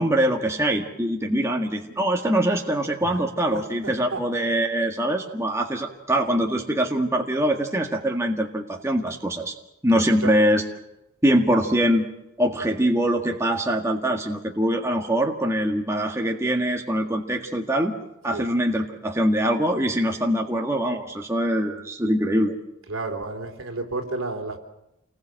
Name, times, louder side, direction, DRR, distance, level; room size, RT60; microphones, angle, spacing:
voice 1, 0.0-9.5 9.8-10.6 11.2-12.1 12.4-17.9 18.2-22.5, right 1 dB, 15° right, 1 dB, 1.8 m, -23 dB
voice 2, 3.5-4.2 10.2-10.4 18.3-18.5 22.9-24.6, right 3 dB, 65° right, 4 dB, 3.7 m, -31 dB
28.5 x 20.5 x 7.7 m, 0.87 s
head